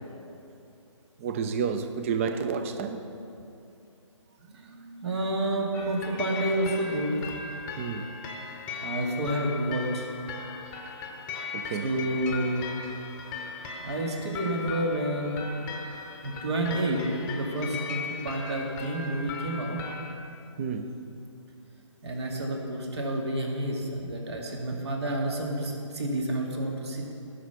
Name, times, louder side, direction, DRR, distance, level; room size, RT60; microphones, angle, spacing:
voice 1, 1.2-3.0 7.8-8.1 11.5-11.9 20.6-20.9 24.7-24.8, right 6 dB, 25° right, 9 dB, 0.6 m, -30 dB
voice 2, 4.4-7.2 8.8-10.1 11.8-12.6 13.8-15.4 16.2-19.8 22.0-27.0, right 1 dB, 55° right, 0 dB, 2.4 m, -29 dB
sound 1, 5.7-20.1, left 5 dB, 20° left, 0.9 m, -38 dB
15.5 x 6.5 x 6.9 m, 2.6 s
figure-of-eight pair, 145°, 17 cm